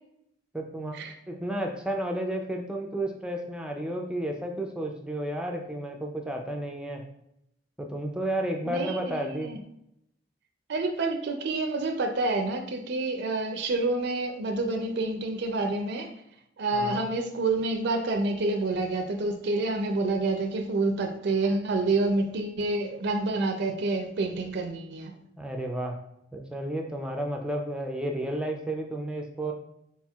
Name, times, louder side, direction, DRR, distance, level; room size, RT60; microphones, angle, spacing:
voice 1, 0.5-0.9 1.3-7.0 7.8-9.5 16.7-17.1 25.4-26.0 26.3-29.5, right 1 dB, 5° right, 1 dB, 0.4 m, -32 dB
voice 2, 8.7-9.6 10.7-16.1 16.6-25.2, right 2 dB, 65° right, 4 dB, 0.4 m, -28 dB
4.3 x 4.2 x 2.3 m, 0.78 s
head